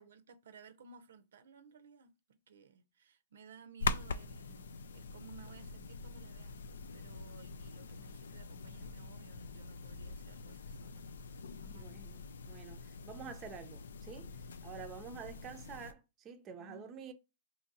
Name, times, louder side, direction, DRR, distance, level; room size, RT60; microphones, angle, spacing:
voice 1, 0.0-6.6 6.9-11.9 16.5-17.0, right 5 dB, 80° right, 0.5 m, -58 dB
sound 1, 3.8-15.9, left 4 dB, 90° left, 0.3 m, -44 dB
voice 2, 11.7-14.3 14.6-17.1, right 6 dB, 25° right, 0.5 m, -48 dB
2.9 x 2.6 x 4.0 m
hypercardioid pair, 140°, 0 cm